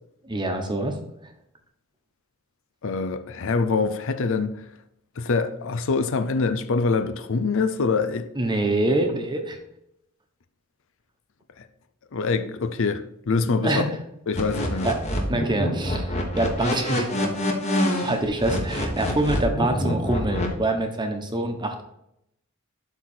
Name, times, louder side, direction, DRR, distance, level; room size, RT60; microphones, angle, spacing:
voice 1, 0.2-0.9 8.3-9.6 13.6-13.9 14.8-15.0 15.3-17.4 18.0-21.8, right 2 dB, 20° right, 1.2 m, -25 dB
voice 2, 2.8-4.7 5.2-8.3 11.6-11.7 12.1-13.8 14.3-14.9, left 4 dB, 65° left, 0.6 m, -25 dB
sound 1, 14.4-20.5, left 1 dB, 30° left, 1.6 m, -26 dB
12.0 x 4.1 x 4.4 m
head